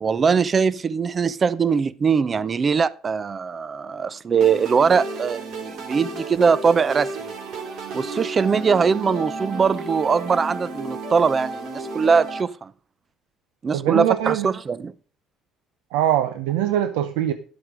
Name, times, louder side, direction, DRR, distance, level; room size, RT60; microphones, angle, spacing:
voice 1, 0.0-7.3 7.9-12.7 13.6-14.9, right 5 dB, 35° right, 0.6 m, -21 dB
sound 1, 4.4-12.4, right 3 dB, 65° right, 2.7 m, -32 dB
voice 2, 13.7-14.5 15.9-17.3, right 11 dB, 85° right, 0.7 m, -22 dB
11.5 x 7.8 x 5.0 m
supercardioid pair, 80°, 0 cm